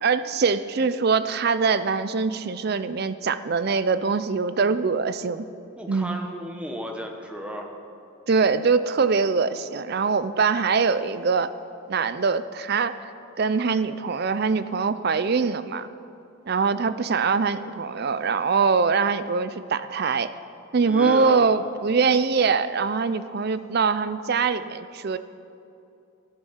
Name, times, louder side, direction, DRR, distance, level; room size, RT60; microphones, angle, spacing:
voice 1, 0.0-5.5 5.9-6.2 8.3-11.5 11.9-13.0 13.4-15.9 16.5-20.3 20.7-25.2, right 5 dB, 45° right, 13 dB, 0.4 m, -23 dB
voice 2, 5.8-7.7 20.8-21.4, equal, 5° right, 2 dB, 1.0 m, -34 dB
13.5 x 11.0 x 5.7 m, 2.7 s
head